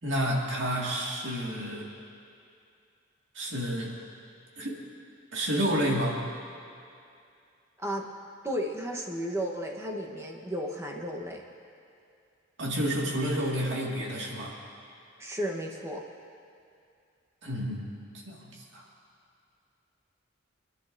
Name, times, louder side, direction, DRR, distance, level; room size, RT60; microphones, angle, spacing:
voice 1, 0.0-1.9 3.3-3.9 4.6-4.8 5.3-6.2 12.6-14.5 17.4-17.9 18.3-18.8, equal, 70° right, -3 dB, 2.1 m, -30 dB
voice 2, 8.4-11.4 15.2-16.0, equal, 15° right, 0 dB, 1.1 m, -33 dB
27.5 x 10.5 x 2.7 m, 2.5 s
head